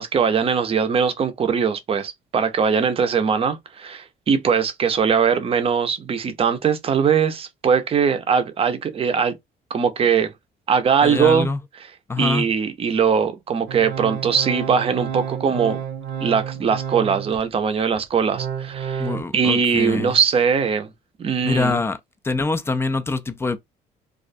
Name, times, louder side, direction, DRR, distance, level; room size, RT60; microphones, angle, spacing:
voice 1, 0.0-9.3 9.7-10.3 10.7-11.5 12.2-15.8 16.2-19.1 19.3-20.9 21.2-21.8, right 6 dB, 35° right, 0.5 m, -21 dB
voice 2, 11.0-11.6 12.1-12.5 19.0-20.2 21.4-22.0 22.2-23.6, left 3 dB, 15° left, 0.3 m, -24 dB
Organ, 13.7-17.5 17.9-19.2, right 8 dB, 80° right, 0.7 m, -30 dB
2.4 x 2.1 x 2.5 m
cardioid pair, 110°, 17 cm